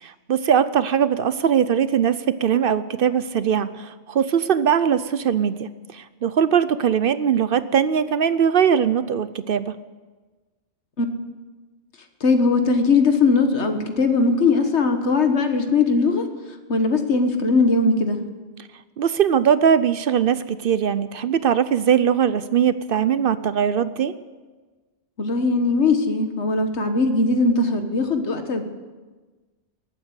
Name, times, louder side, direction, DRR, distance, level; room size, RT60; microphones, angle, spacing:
voice 1, 0.0-9.8 19.0-24.1, right 8 dB, 55° right, 14 dB, 0.7 m, -20 dB
voice 2, 12.2-16.2 16.7-18.2 25.2-28.6, left 3 dB, 70° left, 7 dB, 1.7 m, -20 dB
19.5 x 8.8 x 8.1 m, 1.3 s
omnidirectional pair, 1.2 m